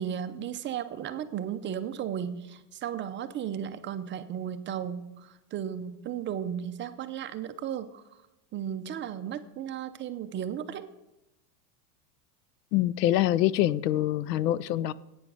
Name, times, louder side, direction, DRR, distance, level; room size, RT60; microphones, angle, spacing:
voice 1, 0.0-8.0 8.5-10.9, right 9 dB, 25° right, 10 dB, 0.6 m, -35 dB
voice 2, 12.7-14.9, left 14 dB, 85° left, 19 dB, 0.7 m, -25 dB
11.0 x 8.8 x 6.7 m, 0.93 s
supercardioid pair, 130°, 48 cm